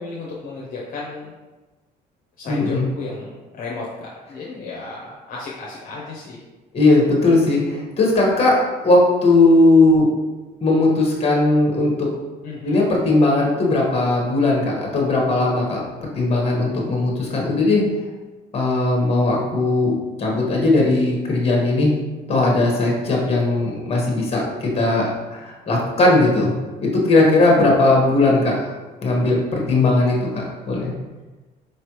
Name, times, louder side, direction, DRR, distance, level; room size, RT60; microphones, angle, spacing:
voice 1, 0.0-1.3 2.4-6.4 12.4-12.8, left 3 dB, 55° left, -4 dB, 0.8 m, -34 dB
voice 2, 2.4-2.9 6.7-10.1 10.6-12.1 12.6-15.8 16.1-17.8 18.5-19.9 20.2-21.9 22.3-25.0 25.3-26.5 26.8-28.5 29.0-30.9, left 2 dB, 35° left, -2 dB, 1.3 m, -18 dB
4.6 x 3.2 x 3.0 m, 1.2 s
cardioid pair, 110°, 17 cm